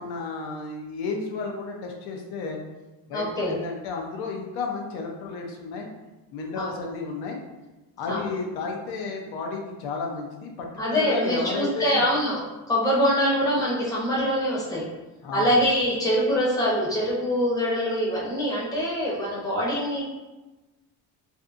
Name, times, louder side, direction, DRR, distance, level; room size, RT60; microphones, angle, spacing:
voice 1, 0.0-2.6 3.1-5.9 6.3-7.4 8.0-12.0 15.2-15.5, left 4 dB, 85° left, 1 dB, 0.6 m, -32 dB
voice 2, 3.1-3.6 6.5-6.7 8.1-8.3 10.8-12.4 12.7-14.8 15.3-20.0, equal, 10° left, -6 dB, 0.5 m, -24 dB
2.6 x 2.5 x 2.4 m, 1.1 s
cardioid pair, 160°, 38 cm